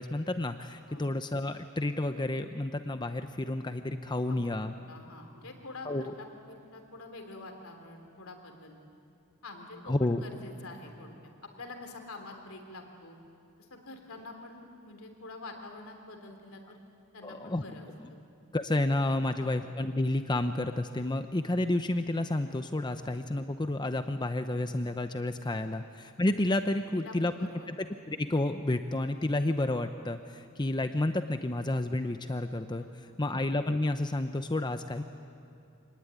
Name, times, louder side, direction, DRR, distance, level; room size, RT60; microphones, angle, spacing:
voice 1, 0.0-4.7 5.8-6.1 9.8-10.2 17.2-17.6 18.5-27.3 27.7-27.8 28.1-35.0, left 1 dB, 20° left, 8 dB, 0.6 m, -30 dB
voice 2, 4.3-8.8 9.4-11.1 11.4-13.2 13.6-16.8 17.1-18.2 19.4-19.5 22.9-23.0 27.0-27.7 32.8-33.3, left 2 dB, 75° left, 4 dB, 3.4 m, -47 dB
26.5 x 19.0 x 10.0 m, 2.6 s
head